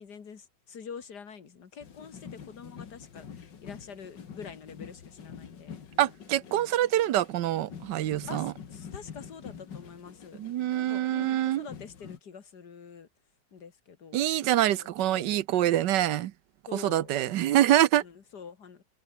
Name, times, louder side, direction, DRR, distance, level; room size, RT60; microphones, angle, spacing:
voice 1, 0.0-6.1 6.5-6.7 8.3-10.4 10.7-13.1 13.5-15.4 16.7-17.1 18.0-18.8, left 6 dB, 65° left, 2.4 m, -46 dB
sound 1, 1.8-12.2, left 7 dB, 85° left, 2.5 m, -47 dB
voice 2, 6.0-8.5 10.4-11.7 14.1-16.3 16.7-18.0, right 13 dB, 80° right, 1.4 m, -25 dB
omnidirectional pair, 1.9 m